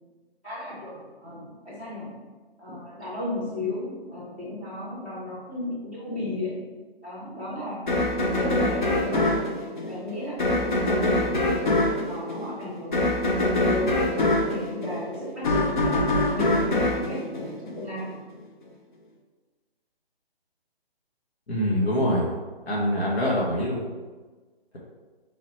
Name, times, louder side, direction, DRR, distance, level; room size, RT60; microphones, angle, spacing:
voice 1, 0.4-2.2 2.6-6.6 7.0-7.9 8.2-9.4 9.8-11.6 12.0-14.0 14.4-16.1 16.3-18.2, left 1 dB, 10° left, -12 dB, 1.1 m, -34 dB
sound 1, 7.9-18.1, left 1 dB, 50° left, 0.7 m, -24 dB
voice 2, 21.5-22.3 22.7-23.8, equal, 80° left, -4 dB, 1.4 m, -24 dB
4.3 x 3.9 x 3.1 m, 1.3 s
hypercardioid pair, 170°, 31 cm